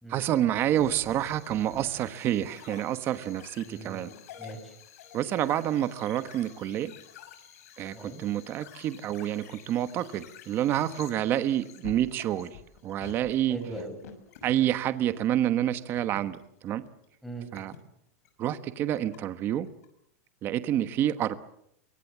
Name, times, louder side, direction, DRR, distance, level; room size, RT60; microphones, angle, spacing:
voice 1, 0.1-4.1 5.1-6.9 7.8-12.5 12.8-13.6 14.4-16.4 16.6-16.8 17.5-17.7 18.4-19.7 20.4-21.4, right 11 dB, 25° right, 12 dB, 1.2 m, -28 dB
sound 1, 0.6-17.8 18.1-18.4 18.8-19.2 19.7-19.8, left 9 dB, 65° left, 6.0 m, -50 dB
voice 2, 3.6-4.7 7.9-8.2 13.5-13.9 17.2-17.7, right 2 dB, ahead, 5 dB, 6.0 m, -40 dB
26.0 x 23.5 x 7.4 m, 0.75 s
supercardioid pair, 170°, 9 cm